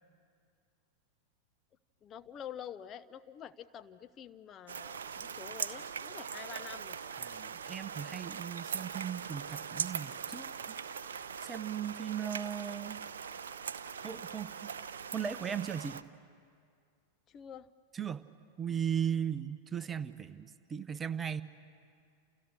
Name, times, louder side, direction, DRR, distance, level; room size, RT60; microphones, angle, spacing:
voice 1, 2.0-7.0 17.3-17.7, left 9 dB, 30° left, 11 dB, 0.6 m, -47 dB
sound 1, 4.7-16.0, right 7 dB, 65° right, 0.8 m, -41 dB
voice 2, 7.2-10.7 11.4-13.0 14.0-14.7 15.1-16.0 17.9-18.2 18.6-21.4, right 8 dB, 20° right, 13 dB, 0.9 m, -37 dB
30.0 x 29.0 x 6.6 m, 2.2 s
figure-of-eight pair, 90°, 0 cm